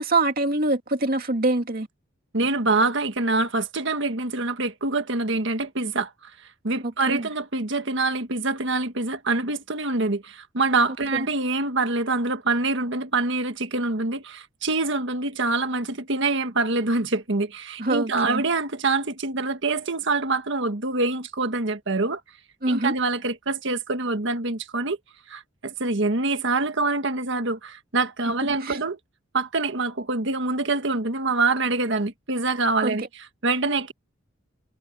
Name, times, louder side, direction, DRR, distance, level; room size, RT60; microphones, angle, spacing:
voice 1, 0.0-1.9 7.1-7.3 11.1-11.2 17.8-18.4 22.6-22.9 28.6-28.8 32.8-32.9, right 2 dB, 50° right, 2.3 m, -24 dB
voice 2, 2.3-6.3 6.6-22.2 22.7-25.0 25.3-29.0 29.3-33.9, right 3 dB, 65° right, 1.6 m, -25 dB
head